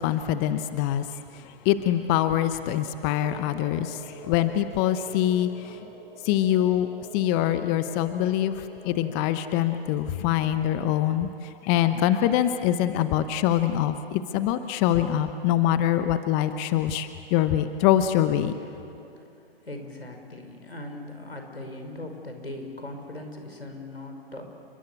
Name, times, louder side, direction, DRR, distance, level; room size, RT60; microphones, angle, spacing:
voice 1, 0.0-5.9 6.2-6.9 7.1-18.6, left 11 dB, 20° left, 11 dB, 0.8 m, -24 dB
sound 1, 3.0-9.8, right 2 dB, 35° right, 5.8 m, -46 dB
voice 2, 18.6-24.5, left 1 dB, 85° left, 4 dB, 5.7 m, -40 dB
29.5 x 23.0 x 8.4 m, 2.4 s
figure-of-eight pair, 130°, 30 cm